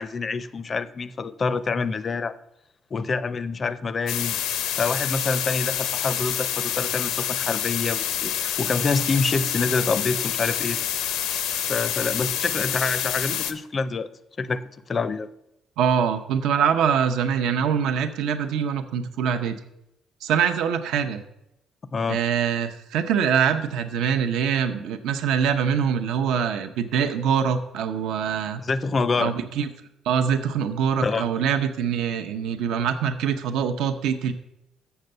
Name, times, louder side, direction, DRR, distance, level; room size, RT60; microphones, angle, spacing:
voice 1, 0.0-2.3 2.9-4.4 4.8-10.8 11.7-14.1 14.4-14.6 14.9-15.3 21.9-22.2 28.6-29.3 31.0-31.4, left 4 dB, 30° left, 15 dB, 0.4 m, -26 dB
sound 1, 4.1-13.5, left 10 dB, 90° left, 0.6 m, -27 dB
voice 2, 15.8-19.6 20.2-21.2 22.1-28.6 29.2-29.7 30.1-34.3, right 7 dB, 80° right, 7 dB, 0.7 m, -24 dB
6.9 x 6.5 x 6.7 m, 0.84 s
cardioid pair, 135°, 0 cm